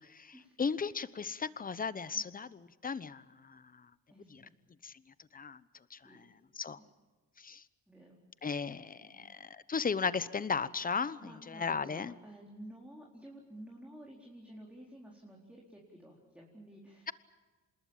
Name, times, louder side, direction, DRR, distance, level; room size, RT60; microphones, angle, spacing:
voice 1, 0.0-3.6 4.3-4.4 4.8-4.9 5.3-5.6 5.9-6.3 6.5-6.8 7.4-7.6 8.4-11.2 11.5-12.1, left 5 dB, 30° left, 16 dB, 1.0 m, -36 dB
voice 2, 4.1-4.5 6.0-6.3 6.8-6.9 7.9-8.2 8.6-9.2 11.2-17.1, right 1 dB, 5° right, -2 dB, 4.4 m, -52 dB
26.5 x 21.0 x 7.4 m, 1.3 s
cardioid pair, 90°, 30 cm